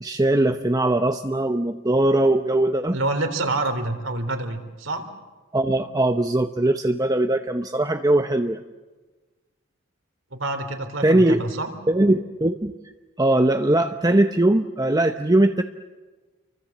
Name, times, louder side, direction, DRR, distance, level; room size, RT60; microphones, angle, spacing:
voice 1, 0.0-3.0 5.5-8.6 11.0-11.4 11.9-12.7 13.2-15.6, right 1 dB, 20° right, 6 dB, 0.8 m, -20 dB
voice 2, 2.9-5.0 10.3-11.7, right 2 dB, 75° right, 5 dB, 3.7 m, -27 dB
29.5 x 24.0 x 7.4 m, 1.3 s
head